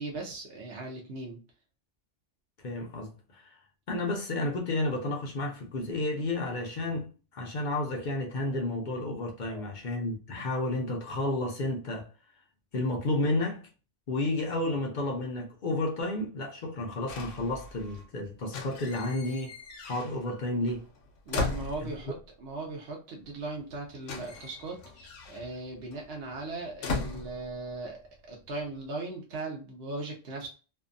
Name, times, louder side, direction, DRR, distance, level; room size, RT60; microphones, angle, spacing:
voice 1, 0.0-1.4 9.5-9.6 21.3-30.5, right 2 dB, 60° right, 0.9 m, -38 dB
voice 2, 2.6-3.6 3.9-12.1 12.7-13.7 14.1-19.5 19.8-20.9 21.8-22.1, left 2 dB, 55° left, 0.5 m, -31 dB
sound 1, 17.1-18.1 18.4-20.4 20.7-22.3 23.3-23.4 23.6-28.0 28.3-28.8, left 3 dB, 90° left, 0.9 m, -38 dB
2.6 x 2.2 x 2.4 m
omnidirectional pair, 1.2 m